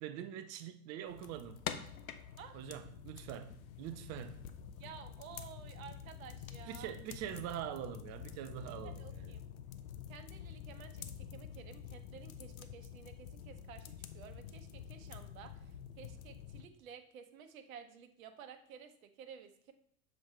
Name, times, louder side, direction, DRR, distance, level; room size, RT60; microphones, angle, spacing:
voice 1, 0.0-1.6 2.5-4.5 6.6-9.3, right 10 dB, 35° right, 10 dB, 0.5 m, -44 dB
sound 1, 1.1-16.6, left 8 dB, 70° left, 0.7 m, -48 dB
voice 2, 4.8-6.9 8.7-9.4 10.1-19.7, right 7 dB, 65° right, 8 dB, 0.9 m, -53 dB
7.1 x 5.1 x 3.1 m, 0.67 s
figure-of-eight pair, 80°, 44 cm